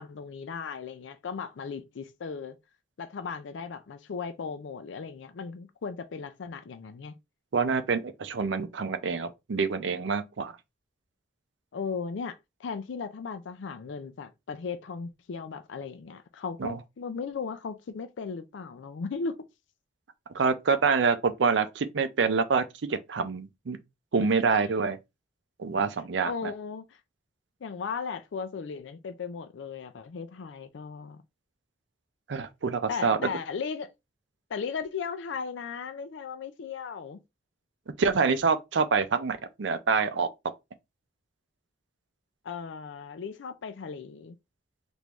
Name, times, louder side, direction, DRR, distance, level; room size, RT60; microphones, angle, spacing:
voice 1, 0.0-2.6 3.0-7.1 11.7-19.4 24.5-24.7 26.2-26.8 27.6-31.2 32.9-33.9 34.5-37.2 42.4-44.4, left 5 dB, 85° left, 0.4 m, -36 dB
voice 2, 7.5-10.5 16.6-16.8 20.3-22.6 22.9-23.8 24.1-25.0 25.6-26.5 32.3-33.2 38.0-40.3, right 5 dB, 80° right, 0.5 m, -26 dB
3.4 x 2.6 x 3.0 m
head